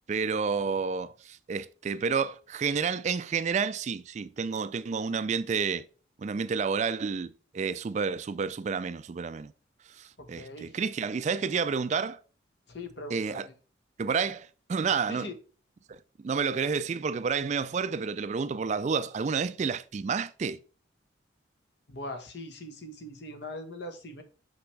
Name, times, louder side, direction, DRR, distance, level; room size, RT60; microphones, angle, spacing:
voice 1, 0.1-5.8 6.2-9.5 9.9-12.2 13.1-13.5 14.0-15.3 15.9-16.0 16.2-20.6, right 5 dB, 40° right, 0.3 m, -30 dB
voice 2, 10.2-10.7 12.7-13.5 15.1-15.3 21.9-24.2, left 1 dB, 60° left, 1.1 m, -41 dB
6.1 x 5.9 x 3.2 m
head